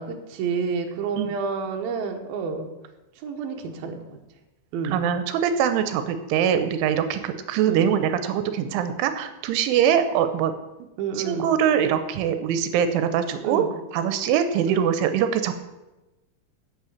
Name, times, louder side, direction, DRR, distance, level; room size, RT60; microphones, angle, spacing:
voice 1, 0.0-2.7 3.2-4.0 4.7-5.0 7.6-7.9 11.0-11.5 13.4-13.7 14.7-14.9, right 5 dB, 65° right, 3 dB, 2.5 m, -29 dB
voice 2, 4.8-10.5 10.8-10.9 11.2-13.6 13.9-15.5, right 8 dB, 90° right, 9 dB, 3.1 m, -23 dB
8.5 x 8.4 x 8.1 m, 1.0 s
omnidirectional pair, 5.6 m